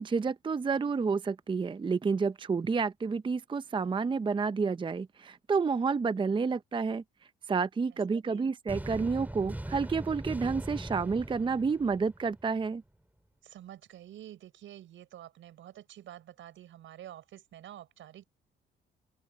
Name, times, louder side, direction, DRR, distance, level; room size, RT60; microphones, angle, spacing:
voice 1, 0.0-7.0 7.5-12.8, right 5 dB, 25° right, 0.6 m, -30 dB
voice 2, 8.1-8.5 13.4-18.2, right 12 dB, 80° right, 6.4 m, -49 dB
sound 1, 8.7-12.7, right 1 dB, 10° right, 4.0 m, -40 dB
open air
cardioid pair, 90°, 20 cm